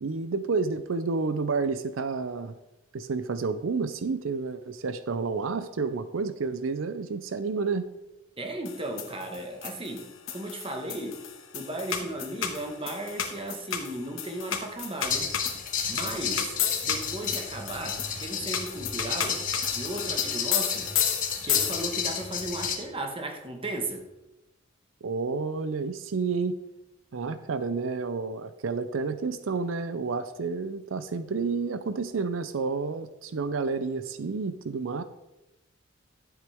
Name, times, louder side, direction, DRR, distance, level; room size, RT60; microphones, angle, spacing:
voice 1, 0.0-2.5 2.9-7.9 25.0-26.6 27.1-35.0, right 4 dB, 90° right, 12 dB, 0.5 m, -30 dB
voice 2, 8.4-11.3 11.5-15.3 15.9-16.6 16.8-19.4 19.7-20.9 21.4-24.1, right 1 dB, 30° right, 3 dB, 1.4 m, -35 dB
sound 1, 8.7-22.2, left 8 dB, 85° left, 1.4 m, -33 dB
sound 2, 15.0-22.8, left 6 dB, 45° left, 1.4 m, -32 dB
12.0 x 8.1 x 3.5 m, 0.96 s
head